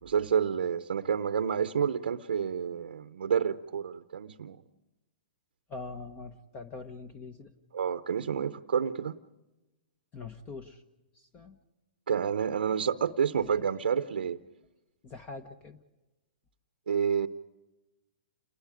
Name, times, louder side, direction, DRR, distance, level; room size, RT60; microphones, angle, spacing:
voice 1, 0.0-4.6 7.7-9.2 12.1-14.4 16.9-17.3, right 7 dB, 85° right, 10 dB, 0.8 m, -29 dB
voice 2, 5.7-7.5 10.1-10.8 11.1-11.6 13.3-13.6 15.0-15.8, left 3 dB, 25° left, 10 dB, 1.2 m, -43 dB
29.0 x 20.5 x 5.1 m, 1.0 s
hypercardioid pair, 135°, 5 cm